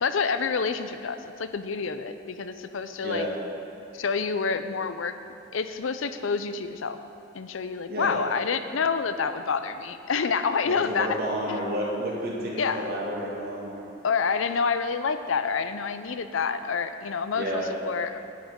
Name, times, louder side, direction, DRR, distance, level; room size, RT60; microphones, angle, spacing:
voice 1, 0.0-3.3 3.9-5.2 5.5-7.0 7.3-11.2 11.5-12.0 12.5-12.9 14.0-18.2, left 5 dB, 75° left, 10 dB, 0.6 m, -28 dB
voice 2, 10.6-13.8 17.3-17.7, equal, 55° right, -4 dB, 2.5 m, -30 dB
11.5 x 6.0 x 8.0 m, 2.8 s
head